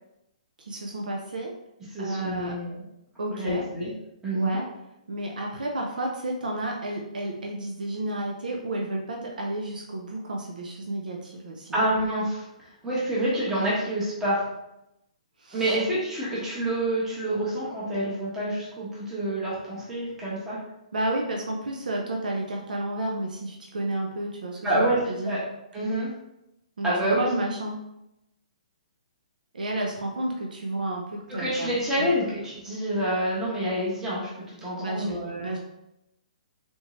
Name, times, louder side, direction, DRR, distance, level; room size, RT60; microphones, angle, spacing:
voice 1, 0.6-1.6 2.0-2.5 3.2-3.6 4.3-4.7 5.1-11.8 15.4-15.8 20.9-25.4 26.8-27.8 29.5-32.1 34.8-35.6, right 1 dB, 90° right, 0 dB, 0.6 m, -31 dB
voice 2, 1.9-2.7 3.3-3.9 4.2-4.6 11.7-12.4 12.8-14.4 15.5-20.6 24.6-25.4 25.7-26.1 26.8-27.2 31.3-35.5, right 1 dB, 10° right, -8 dB, 0.9 m, -27 dB
3.6 x 2.7 x 3.0 m, 0.87 s
hypercardioid pair, 155°, 4 cm